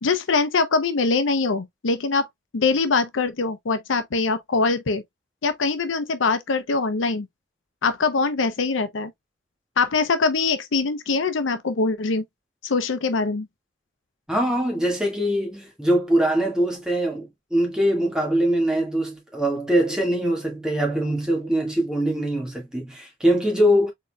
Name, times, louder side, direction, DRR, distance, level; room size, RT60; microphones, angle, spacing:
voice 1, 0.0-2.3 2.5-5.0 5.4-7.3 7.8-9.1 9.8-12.2 12.6-13.5, left 4 dB, 85° left, 0.7 m, -23 dB
voice 2, 14.3-23.9, equal, 5° right, 1.7 m, -22 dB
4.2 x 3.7 x 2.2 m
head